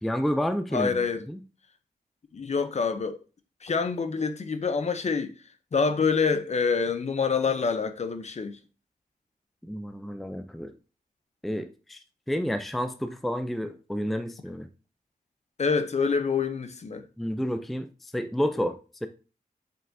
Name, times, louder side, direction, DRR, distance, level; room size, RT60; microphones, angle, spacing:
voice 1, 0.0-1.0 1.3-1.4 9.6-10.7 11.4-12.0 12.3-14.7 17.2-19.1, equal, ahead, 0.4 m, -30 dB
voice 2, 0.7-1.2 2.3-3.2 3.6-5.3 5.7-8.6 15.6-17.1, left 5 dB, 45° left, 0.7 m, -26 dB
7.4 x 5.4 x 2.7 m
wide cardioid pair, 140°, 15 cm